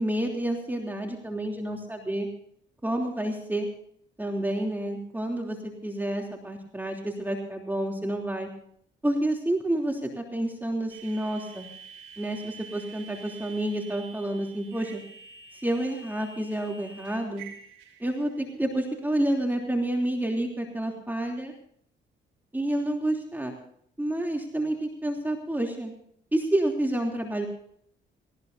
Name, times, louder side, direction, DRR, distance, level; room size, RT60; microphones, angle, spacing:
voice 1, 0.0-2.3 2.8-3.7 4.2-8.5 9.0-11.7 12.2-15.0 15.5-17.4 18.0-21.5 22.5-23.5 24.0-25.9 26.3-27.5, right 1 dB, 10° right, 1 dB, 3.1 m, -29 dB
sound 1, 10.9-18.5, right 6 dB, 90° right, 5.4 m, -48 dB
19.0 x 19.0 x 2.8 m, 0.64 s
cardioid pair, 90°, 20 cm